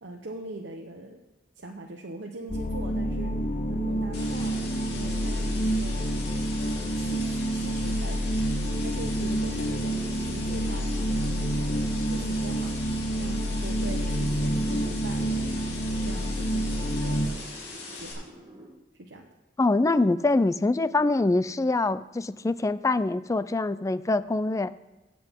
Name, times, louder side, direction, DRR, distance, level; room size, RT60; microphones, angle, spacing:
voice 1, 0.0-1.2 1.6-3.3 3.7-6.2 6.6-12.7 13.2-15.7 16.0-17.5 17.9-18.2 19.0-19.3, right 2 dB, 75° right, 0 dB, 1.0 m, -42 dB
sound 1, 2.5-17.3, equal, 45° left, 0.8 m, -28 dB
sound 2, 2.9-18.7, right 1 dB, 25° right, 1.6 m, -46 dB
sound 3, 4.1-18.1, left 3 dB, 65° left, 3.0 m, -41 dB
voice 2, 19.6-24.7, left 2 dB, 20° left, 15 dB, 0.3 m, -24 dB
16.5 x 7.6 x 3.7 m, 1.0 s
head